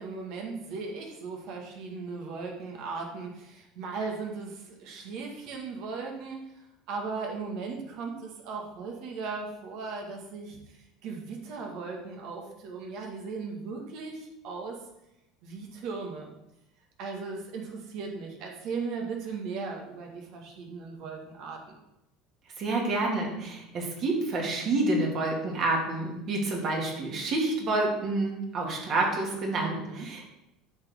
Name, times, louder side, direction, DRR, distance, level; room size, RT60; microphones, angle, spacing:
voice 1, 0.0-14.8 15.4-16.3 17.0-21.8 29.5-30.1, right 4 dB, 55° right, 1 dB, 1.8 m, -37 dB
voice 2, 22.6-30.3, right 2 dB, 40° right, 0 dB, 2.2 m, -28 dB
10.5 x 6.2 x 3.7 m, 0.87 s
cardioid pair, 150°, 0 cm